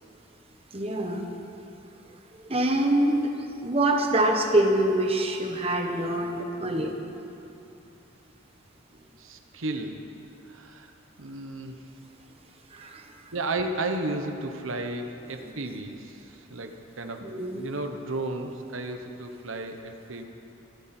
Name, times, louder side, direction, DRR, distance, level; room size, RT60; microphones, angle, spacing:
voice 1, 0.7-1.3 2.3-3.2 3.6-6.9 12.7-13.1 17.2-17.6, right 1 dB, 30° right, 2 dB, 1.3 m, -25 dB
voice 2, 9.2-10.0 10.5-10.9 11.2-11.8 12.8-12.9 13.3-20.2, right 2 dB, 80° right, 5 dB, 1.1 m, -33 dB
25.5 x 13.0 x 4.4 m, 2.9 s
head